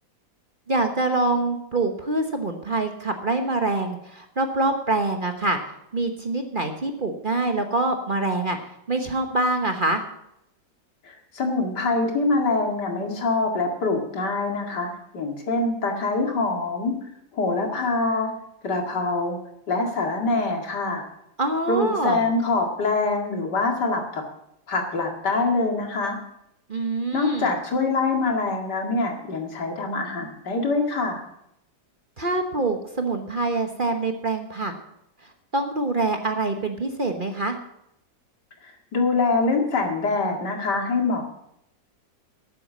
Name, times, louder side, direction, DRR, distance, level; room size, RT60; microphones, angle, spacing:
voice 1, 0.7-5.6 5.9-8.6 8.9-10.0 21.4-22.3 26.7-27.5 32.2-34.7 35.5-37.6, right 2 dB, 35° right, 5 dB, 1.0 m, -25 dB
voice 2, 11.0-16.9 17.3-18.3 18.6-19.4 19.7-21.0 21.7-24.2 24.7-26.2 27.1-31.2 38.6-41.2, left 3 dB, 65° left, 2 dB, 2.7 m, -24 dB
12.5 x 8.6 x 7.3 m, 0.78 s
omnidirectional pair, 2.0 m